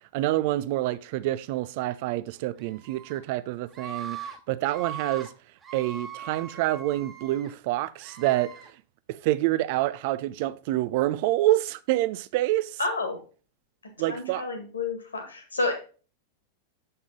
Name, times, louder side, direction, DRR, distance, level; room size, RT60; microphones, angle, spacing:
voice 1, 0.1-5.3 5.7-8.6 9.1-12.8 14.0-14.5, right 16 dB, 50° right, 0.4 m, -27 dB
Screaming, 2.6-3.2 3.7-4.4 4.6-5.3 5.6-7.5 8.0-8.7, right 7 dB, 20° right, 2.1 m, -40 dB
voice 2, 12.8-13.2 14.1-15.7, left 3 dB, 75° left, 1.8 m, -30 dB
7.5 x 5.5 x 3.7 m
figure-of-eight pair, 90°, 0 cm